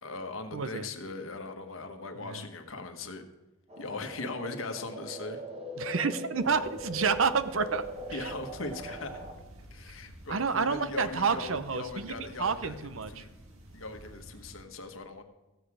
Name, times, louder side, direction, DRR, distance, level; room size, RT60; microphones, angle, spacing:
voice 1, 0.0-3.2 3.8-5.4 8.1-9.2 9.7-12.8 13.1-13.3 13.7-15.2, left 3 dB, 75° left, 7 dB, 1.2 m, -39 dB
voice 2, 0.5-0.9 2.2-2.4 5.8-7.8 8.1-8.3 10.3-13.2, right 5 dB, 75° right, 12 dB, 0.7 m, -29 dB
sound 1, 3.7-9.3, equal, 30° right, 1.3 m, -41 dB
sound 2, 6.4-14.6, equal, 90° right, 1.8 m, -51 dB
14.5 x 7.9 x 4.9 m, 1.1 s
head